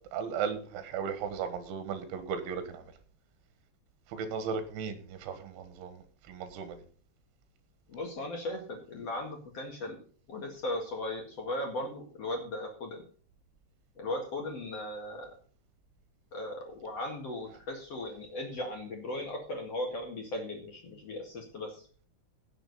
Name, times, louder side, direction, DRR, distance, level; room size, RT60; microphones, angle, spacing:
voice 1, 0.1-2.8 4.1-6.8, right 6 dB, 75° right, 10 dB, 3.8 m, -36 dB
voice 2, 7.9-10.0 10.3-13.0 14.0-15.3 16.3-21.9, left 1 dB, 50° left, 1 dB, 2.0 m, -37 dB
17.0 x 7.0 x 4.1 m, 0.43 s
omnidirectional pair, 5.6 m